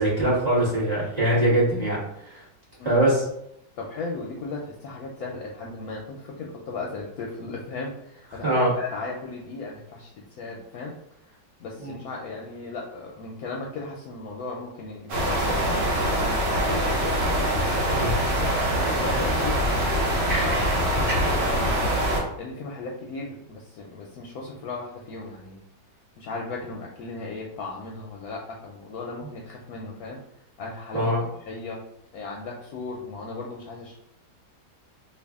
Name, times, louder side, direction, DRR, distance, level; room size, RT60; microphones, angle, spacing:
voice 1, 0.0-2.0 2.2-2.4 2.8-3.2 8.4-8.7 11.8-12.0 17.9-18.2 30.9-31.2, right 1 dB, 25° right, -8 dB, 1.3 m, -22 dB
voice 2, 3.8-10.1 10.4-10.9 11.2-11.3 11.6-17.2 18.8-20.0 20.2-21.9 22.4-25.6 26.2-30.2 30.6-31.1 31.5-31.8 32.1-34.0, left 3 dB, 70° left, -1 dB, 1.0 m, -36 dB
sound 1, 15.1-22.2, equal, 65° right, 1.5 m, -24 dB
3.3 x 2.4 x 3.5 m, 0.80 s
omnidirectional pair, 1.8 m